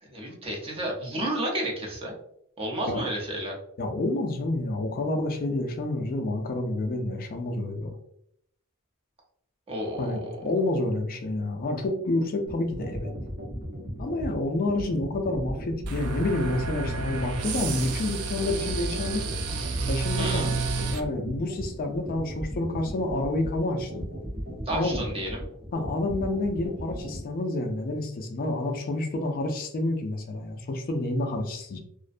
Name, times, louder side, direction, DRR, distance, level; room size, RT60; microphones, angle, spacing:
voice 1, 0.0-2.1 2.6-3.6 9.7-10.3 20.2-20.5 24.7-25.4, right 1 dB, 25° right, -1 dB, 0.6 m, -31 dB
voice 2, 3.8-8.0 10.0-13.1 14.0-19.4 19.9-24.0 24.7-25.1 25.7-31.8, left 2 dB, 40° left, 4 dB, 0.3 m, -29 dB
sound 1, 12.5-27.2, equal, 50° right, 0.9 m, -37 dB
sound 2, 15.9-21.0, right 3 dB, 75° right, 0.4 m, -30 dB
2.5 x 2.1 x 2.4 m, 0.71 s
head